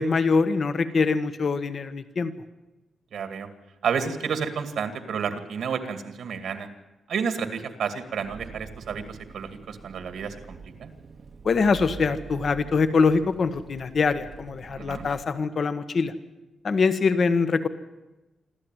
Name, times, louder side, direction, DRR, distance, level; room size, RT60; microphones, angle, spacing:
voice 1, 0.0-2.3 11.4-16.1 16.6-17.7, left 4 dB, 40° left, 12 dB, 1.4 m, -23 dB
voice 2, 3.1-3.5 3.8-6.7 7.1-10.9 14.8-15.1, right 6 dB, 70° right, 9 dB, 2.3 m, -31 dB
Engine, 8.1-15.2, right 5 dB, 40° right, 1.2 m, -44 dB
26.5 x 13.0 x 9.2 m, 1.0 s
wide cardioid pair, 145°, 0 cm